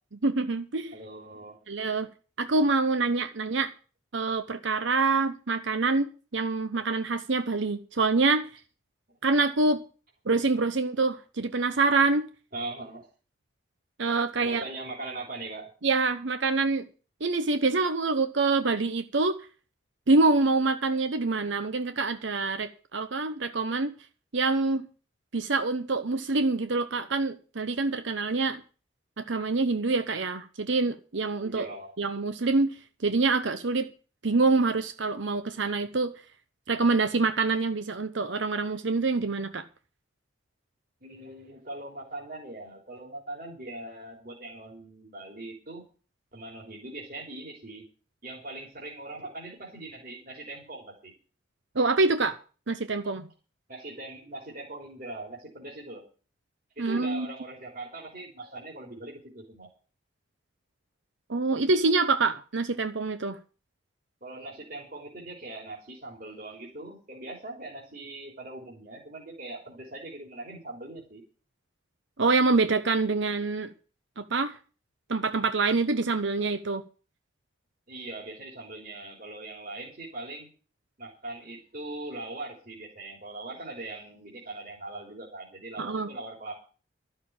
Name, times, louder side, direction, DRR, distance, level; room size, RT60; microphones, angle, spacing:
voice 1, 0.2-0.9 1.7-2.1 2.4-3.7 4.1-8.5 9.2-9.8 10.2-12.3 14.0-14.6 15.8-16.9 17.2-19.4 20.1-23.9 24.3-24.9 25.3-28.6 29.2-31.7 32.0-33.9 34.2-36.1 36.7-39.6 51.7-52.4 52.7-53.3 56.8-57.3 61.3-63.4 72.2-73.7 74.2-74.6 75.1-76.8 85.8-86.1, right 3 dB, 70° right, 9 dB, 0.9 m, -26 dB
voice 2, 0.9-1.6 9.1-9.2 12.5-13.1 14.4-15.7 31.4-31.9 41.0-45.8 46.3-47.9 48.2-51.1 53.7-56.0 56.8-59.7 64.2-71.2 77.9-80.5 81.0-86.6, right 2 dB, 45° right, -2 dB, 3.6 m, -41 dB
12.5 x 6.6 x 8.8 m, 0.37 s
head